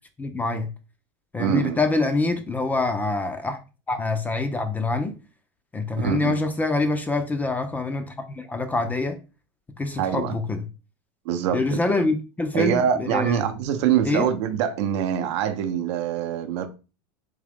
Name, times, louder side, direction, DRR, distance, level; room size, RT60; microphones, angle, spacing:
voice 1, 0.2-0.7 1.3-3.6 3.9-5.1 5.7-9.1 9.8-10.6 11.5-13.4 14.0-14.3, left 3 dB, 10° left, 0.4 m, -25 dB
voice 2, 1.4-1.8 6.0-6.4 10.0-10.4 11.2-11.8 12.5-16.7, right 9 dB, 70° right, 0.6 m, -24 dB
3.6 x 2.9 x 3.4 m
supercardioid pair, 145°, 15 cm